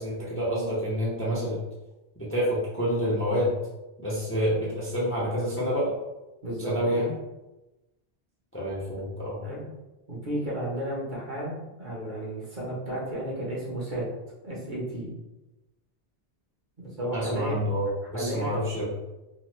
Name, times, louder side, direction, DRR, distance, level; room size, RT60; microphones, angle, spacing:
voice 1, 0.0-1.6 2.2-3.5 4.0-5.9 6.6-7.1 8.5-9.4 17.1-18.9, equal, 15° left, -7 dB, 0.5 m, -28 dB
voice 2, 6.4-7.0 9.4-9.6 10.1-14.1 14.4-15.1 16.8-17.6 18.1-18.5, right 1 dB, 50° right, -5 dB, 0.9 m, -33 dB
2.9 x 2.1 x 3.1 m, 1.0 s
omnidirectional pair, 1.1 m